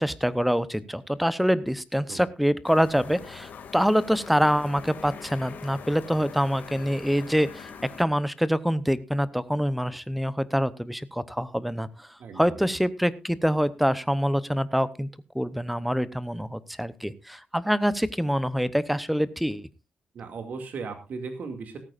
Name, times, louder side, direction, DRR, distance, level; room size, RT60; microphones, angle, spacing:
voice 1, 0.0-7.7 8.0-12.1 12.3-15.1 15.3-19.7, equal, ahead, 16 dB, 0.8 m, -25 dB
sound 1, 2.6-8.0, left 6 dB, 75° left, 2.4 m, -43 dB
voice 2, 12.2-12.6 20.1-21.8, right 4 dB, 65° right, 6 dB, 2.4 m, -37 dB
16.5 x 14.0 x 2.5 m, 0.27 s
cardioid pair, 125°, 3 cm